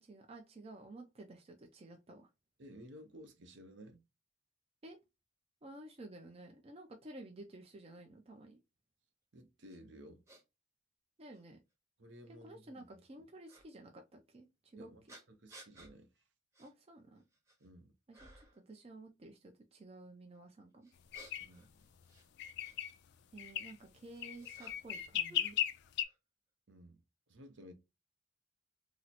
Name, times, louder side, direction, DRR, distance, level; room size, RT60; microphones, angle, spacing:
voice 1, 0.0-2.3 4.8-5.0 5.6-8.6 11.2-11.6 12.4-14.9 16.6-17.2 18.1-20.9 23.3-25.5, right 2 dB, 30° right, 0.5 m, -53 dB
voice 2, 2.6-4.0 9.3-10.2 12.0-12.9 14.8-15.0 15.3-16.2 17.6-17.9 21.4-21.7 26.7-27.0 27.3-27.7, equal, 65° right, 0.7 m, -55 dB
sound 1, 9.7-9.8 10.3-10.4 11.3-11.4 13.5-13.7 15.1-15.9 16.5-16.7 17.2-17.7 18.1-18.6 20.8-22.8 23.7-25.0 25.3-26.2, right 1 dB, 15° right, 1.0 m, -58 dB
sound 2, 21.1-21.4 22.4-22.9 23.4-23.7 24.2-26.0, left 11 dB, 60° left, 0.3 m, -36 dB
2.9 x 2.0 x 4.0 m
head